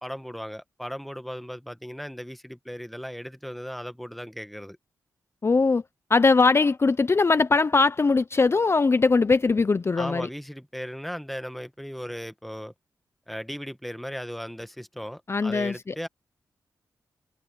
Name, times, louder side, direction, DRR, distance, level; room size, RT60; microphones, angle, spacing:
voice 1, 0.0-4.8 10.0-12.7 13.3-16.1, equal, ahead, 1.2 m, -37 dB
voice 2, 5.4-5.8 6.1-10.3 15.3-15.9, left 4 dB, 35° left, 0.6 m, -21 dB
open air
cardioid pair, 70°, 7 cm